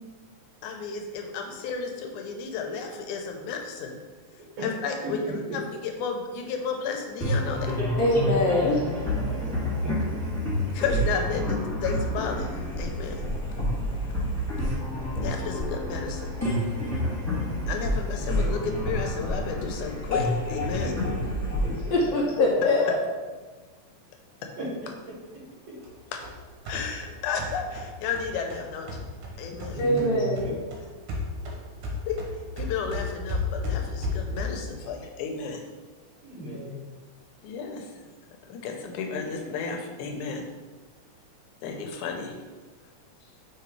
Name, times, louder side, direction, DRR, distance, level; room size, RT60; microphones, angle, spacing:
voice 1, 0.6-4.0 4.6-7.8 10.7-13.3 15.1-16.4 17.7-20.9 26.1-26.2 26.7-29.1 29.4-29.8 32.1-32.2 32.6-35.6 37.4-37.9 38.5-40.4 41.6-42.3, left 5 dB, 90° left, 3 dB, 2.2 m, -33 dB
voice 2, 5.0-5.6 8.8-9.5 9.8-9.9 20.8-21.1 21.6-21.7 24.6-24.7 25.0-25.8 29.7-30.5 36.2-36.8, right 1 dB, 60° right, -5 dB, 3.0 m, -36 dB
sound 1, 7.2-22.8, left 1 dB, 10° left, 0.9 m, -29 dB
voice 3, 8.0-8.8 21.9-23.0 29.8-30.5, left 1 dB, 70° left, -3 dB, 1.8 m, -23 dB
sound 2, 25.8-30.1 30.4-34.7, left 3 dB, 80° right, 2.5 m, -33 dB
5.4 x 3.9 x 4.6 m, 1.3 s
omnidirectional pair, 3.4 m